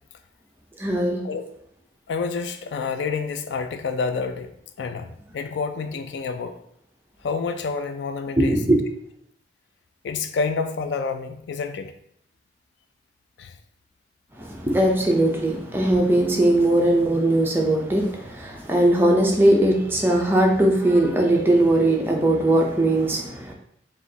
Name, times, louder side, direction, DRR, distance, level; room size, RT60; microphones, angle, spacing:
voice 1, 0.8-1.2 8.4-8.8 14.4-23.5, right 1 dB, 10° right, 0 dB, 0.5 m, -20 dB
voice 2, 2.1-4.5 4.8-6.5 7.2-8.6 10.0-11.9 13.4-13.5, left 5 dB, 65° left, 8 dB, 0.3 m, -28 dB
4.9 x 2.4 x 2.7 m, 0.69 s
head